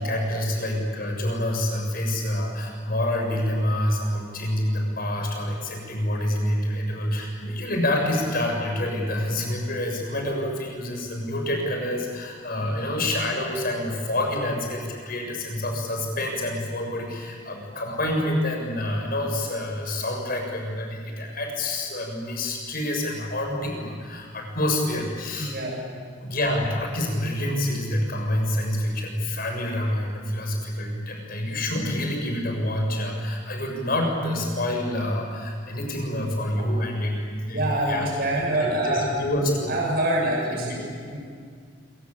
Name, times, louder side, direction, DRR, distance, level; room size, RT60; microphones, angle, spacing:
voice 1, 0.0-25.5 26.2-38.1 38.6-39.7 40.6-40.8, left 1 dB, 50° left, 1 dB, 7.1 m, -27 dB
voice 2, 25.4-25.8 37.5-39.1 39.7-41.2, right 1 dB, 55° right, -2 dB, 7.3 m, -26 dB
26.5 x 24.5 x 8.8 m, 2.1 s
head